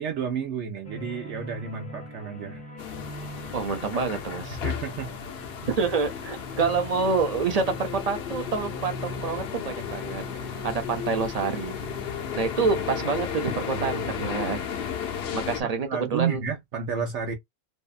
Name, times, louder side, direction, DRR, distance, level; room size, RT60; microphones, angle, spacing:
voice 1, 0.0-2.6 4.6-5.1 13.7-13.9 15.6-17.3, right 7 dB, 70° right, 0.9 m, -31 dB
sound 1, 0.8-15.2, left 1 dB, 10° left, 0.6 m, -42 dB
sound 2, 2.8-15.6, left 8 dB, 65° left, 0.7 m, -34 dB
voice 2, 3.5-4.6 5.7-10.2 10.6-11.8 12.4-14.6 15.3-16.4, right 4 dB, 45° right, 0.5 m, -27 dB
2.6 x 2.3 x 2.4 m
omnidirectional pair, 1.3 m